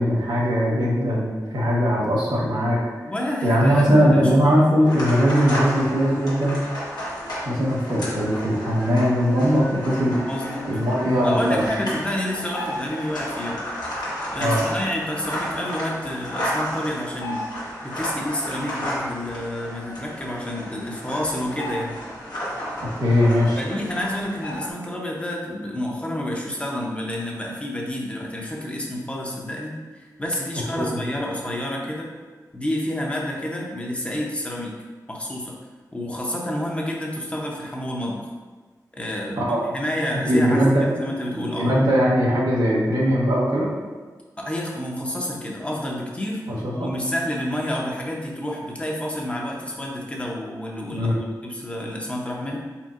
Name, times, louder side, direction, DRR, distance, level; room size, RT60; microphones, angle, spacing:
voice 1, 0.0-2.8 3.4-6.6 7.4-10.2 10.6-11.9 14.4-14.6 23.0-23.6 30.8-31.0 39.4-39.6 40.3-41.0 41.3-43.7 46.6-46.9 50.9-51.1, equal, 90° right, -5 dB, 1.0 m, -20 dB
voice 2, 3.0-4.9 10.3-10.7 11.2-13.6 14.3-17.5 17.8-22.0 23.5-32.1 32.5-34.8 35.1-35.6 35.9-38.3 38.9-41.7 44.4-51.1 51.4-52.6, left 1 dB, 20° left, -2 dB, 0.7 m, -29 dB
sound 1, 4.8-24.7, equal, 85° left, 1.3 m, -32 dB
4.3 x 4.0 x 2.5 m, 1.4 s
wide cardioid pair, 90°, 7 cm